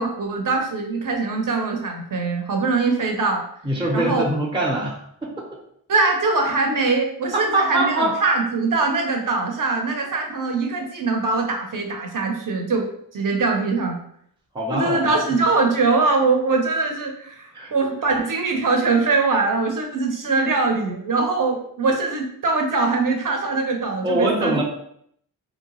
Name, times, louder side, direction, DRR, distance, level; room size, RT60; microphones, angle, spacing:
voice 1, 0.0-3.4 3.9-4.3 5.9-12.9 13.1-14.0 14.7-24.6, right 3 dB, 45° right, 2 dB, 0.7 m, -22 dB
voice 2, 3.6-5.5 7.5-8.1 14.5-15.4 17.5-17.7 24.0-24.6, right 1 dB, 10° right, -2 dB, 0.6 m, -23 dB
2.8 x 2.1 x 2.9 m, 0.69 s
cardioid pair, 45°, 44 cm